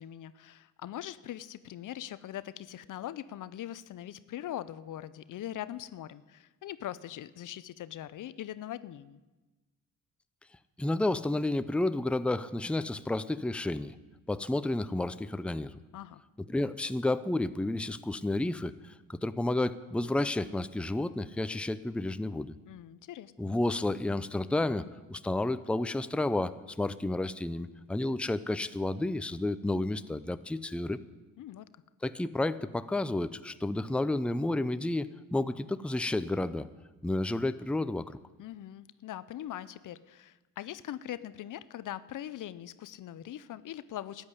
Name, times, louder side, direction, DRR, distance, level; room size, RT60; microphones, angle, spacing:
voice 1, 0.0-9.2 15.9-16.2 22.7-23.3 31.4-31.7 38.4-44.3, left 12 dB, 60° left, 16 dB, 0.7 m, -41 dB
voice 2, 10.8-13.9 14.3-15.8 16.5-22.5 23.4-31.0 32.0-36.7 37.0-38.2, left 2 dB, 5° left, 13 dB, 0.6 m, -31 dB
13.0 x 8.9 x 9.8 m, 1.2 s
supercardioid pair, 65°, 35 cm